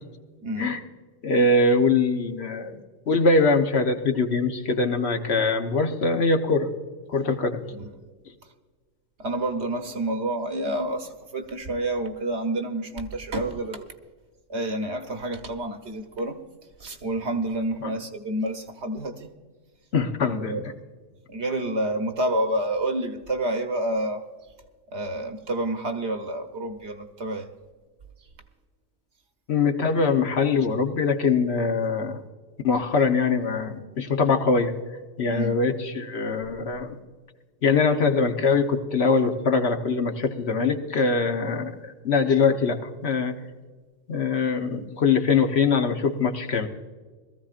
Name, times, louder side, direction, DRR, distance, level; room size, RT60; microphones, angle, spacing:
voice 1, 0.4-0.7 7.7-7.9 9.2-13.9 14.5-16.4 16.8-19.3 20.4-20.6 21.3-24.2 24.9-27.5 35.3-35.5, right 1 dB, 60° right, 5 dB, 1.4 m, -29 dB
voice 2, 1.2-2.8 3.1-6.7 7.1-7.6 17.8-17.9 19.9-20.7 29.5-32.2 32.6-34.7 35.2-36.9 37.6-43.3 44.1-46.7, left 4 dB, 55° left, 5 dB, 1.2 m, -23 dB
21.5 x 14.5 x 2.5 m, 1.4 s
omnidirectional pair, 1.3 m